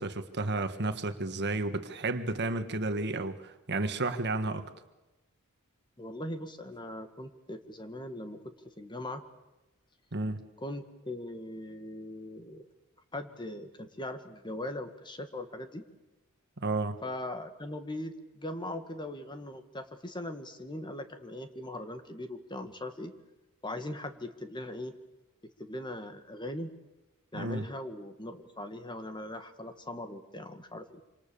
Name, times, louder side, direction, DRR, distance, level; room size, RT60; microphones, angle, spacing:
voice 1, 0.0-4.7 10.1-10.4 16.6-17.0 27.3-27.6, right 2 dB, 55° right, 8 dB, 1.6 m, -32 dB
voice 2, 6.0-8.4 8.8-9.2 10.6-12.6 13.1-15.8 17.0-23.1 23.6-24.9 25.6-26.7 27.3-31.0, left 1 dB, 20° left, 8 dB, 1.8 m, -40 dB
27.0 x 26.5 x 7.1 m, 1.0 s
head